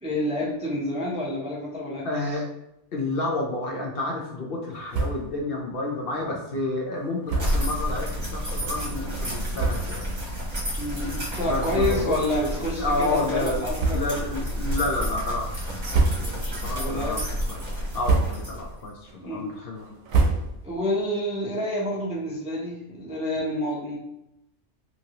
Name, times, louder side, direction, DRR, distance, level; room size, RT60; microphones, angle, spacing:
voice 1, 0.0-2.4 10.8-14.0 16.8-17.2 19.2-19.5 20.6-24.0, left 1 dB, 10° right, -5 dB, 0.3 m, -29 dB
voice 2, 2.0-2.5 2.9-10.0 11.4-13.7 13.9-15.8 16.2-17.2 17.5-20.0, left 2 dB, 60° left, 0 dB, 0.7 m, -30 dB
sound 1, 4.9-5.4 5.7-5.8 6.1-6.2 7.2-7.7 8.4-8.5 9.2-9.3 9.5-10.1 10.6-10.8 11.7-12.4 12.7-12.9 13.7-14.3 14.8-15.2 15.7-16.6 17.0-17.4 17.8-18.7 19.0-20.9, right 3 dB, 75° right, 0.9 m, -27 dB
sound 2, 7.4-18.9, equal, 40° right, 1.0 m, -30 dB
2.8 x 2.5 x 2.8 m, 0.85 s
omnidirectional pair, 1.2 m